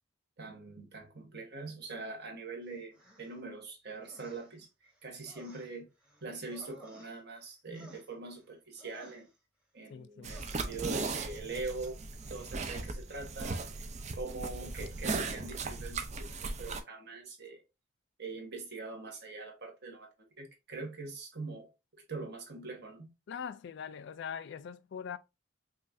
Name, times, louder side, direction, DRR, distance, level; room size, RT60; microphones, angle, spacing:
voice 1, 0.4-5.9 6.2-9.3 9.7-12.0 12.3-13.9 14.2-17.6 18.2-20.1 20.4-21.7 22.1-23.1, right 3 dB, 55° right, 1.3 m, -43 dB
sound 1, 2.9-3.4 4.0-4.6 4.9-7.5 7.7-8.4 8.8-9.3 10.2-10.6, right 1 dB, 5° right, 1.0 m, -57 dB
voice 2, 9.9-10.4 23.3-25.2, left 7 dB, 55° left, 0.3 m, -42 dB
sound 2, 10.2-16.8, right 3 dB, 35° right, 0.5 m, -37 dB
5.2 x 2.4 x 2.6 m
head